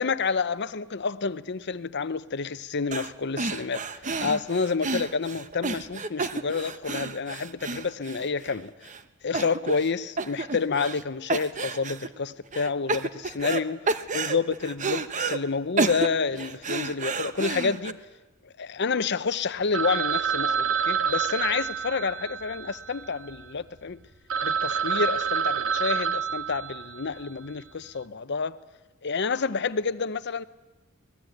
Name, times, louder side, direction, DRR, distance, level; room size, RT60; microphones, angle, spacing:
voice 1, 0.0-3.8 4.2-8.7 9.2-18.0 18.6-24.0 24.4-28.6 29.0-30.4, left 5 dB, 55° left, 0.8 m, -29 dB
sound 1, 2.9-3.1 3.4-8.5 8.9-9.0 9.3-9.9 10.2-11.0 11.3-12.1 12.5-13.6 13.9-15.4 15.8-17.9, right 3 dB, 35° right, 1.0 m, -30 dB
Telephone, 19.7-23.5 24.0-24.1 24.3-27.2, right 7 dB, 70° right, 1.3 m, -28 dB
24.5 x 20.0 x 9.1 m
head